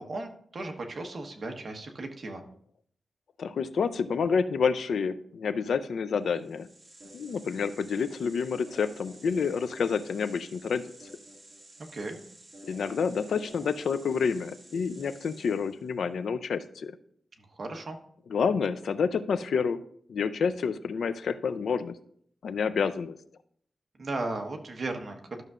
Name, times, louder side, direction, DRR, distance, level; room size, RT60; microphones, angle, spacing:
voice 1, 0.0-2.4 11.9-12.2 17.5-18.0 24.0-25.4, right 2 dB, 50° right, 3 dB, 1.2 m, -36 dB
voice 2, 3.4-6.7 7.1-10.8 12.6-16.9 18.3-19.8 20.1-22.0 22.4-23.2, left 6 dB, 85° left, 12 dB, 0.4 m, -28 dB
sound 1, 6.3-15.9, right 1 dB, 30° right, 2.1 m, -51 dB
12.5 x 6.6 x 2.5 m, 0.63 s
wide cardioid pair, 110°, 0 cm